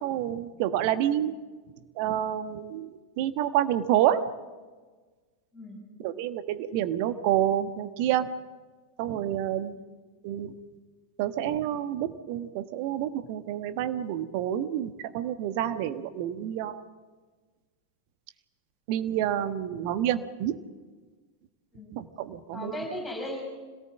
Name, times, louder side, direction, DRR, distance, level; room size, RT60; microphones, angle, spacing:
voice 1, 0.0-1.3 2.0-2.9 3.2-4.2 6.0-8.3 9.0-9.8 10.2-10.5 11.2-16.8 18.9-20.6 21.9-22.7, right 11 dB, 45° right, 10 dB, 1.3 m, -28 dB
voice 2, 5.5-5.8 21.7-21.9 22.5-23.4, left 1 dB, 10° left, 0 dB, 6.5 m, -36 dB
26.0 x 18.0 x 7.5 m, 1.4 s
figure-of-eight pair, 90°, 0 cm